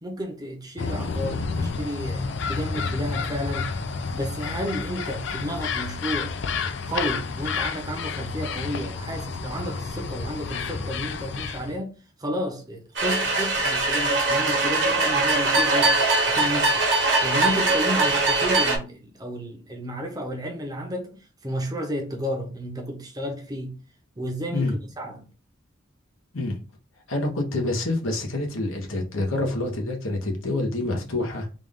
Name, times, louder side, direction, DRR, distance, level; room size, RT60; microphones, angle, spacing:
voice 1, 0.0-6.3 6.9-16.0 16.3-16.9 17.2-23.8 24.2-25.3, equal, 20° right, 0.7 m, -32 dB
sound 1, 0.8-11.8, left 4 dB, 65° left, 0.4 m, -30 dB
sound 2, 13.0-18.8, right 2 dB, 60° right, 1.0 m, -21 dB
voice 2, 27.1-31.5, left 2 dB, 85° left, 1.0 m, -27 dB
3.7 x 2.5 x 3.5 m
head